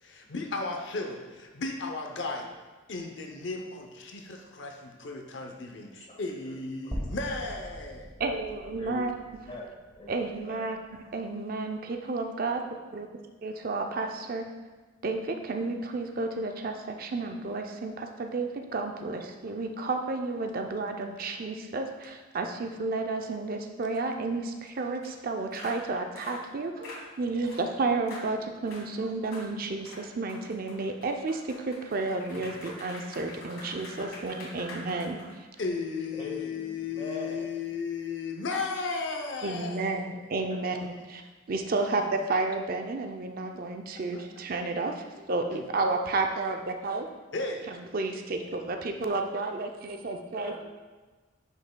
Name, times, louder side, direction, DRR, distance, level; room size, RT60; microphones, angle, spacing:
voice 1, 0.0-2.5 2.9-8.1 32.3-32.6 35.6-40.1 44.1-44.2 45.5-45.7 47.3-47.7, left 4 dB, 60° left, 3 dB, 0.6 m, -35 dB
sound 1, 6.9-11.1, equal, 10° right, 0.7 m, -41 dB
voice 2, 8.2-9.1 10.1-10.8 11.1-12.6 12.9-13.1 13.4-14.5 15.0-35.2 39.4-41.2 41.5-47.1 47.7-50.6, right 3 dB, 45° right, 4 dB, 0.4 m, -31 dB
voice 3, 8.8-10.1 10.5-10.6 34.2-34.5 36.1-37.6 40.5-40.9 50.3-50.6, left 1 dB, 30° left, -2 dB, 1.3 m, -42 dB
sound 2, 25.0-25.1 25.5-25.8 26.2-26.4 26.8-27.0 27.5-27.7 28.1-28.3 28.7-28.9 29.3-29.5 29.8-35.6, left 1 dB, 80° left, 1.5 m, -45 dB
9.3 x 5.4 x 2.2 m, 1.3 s
head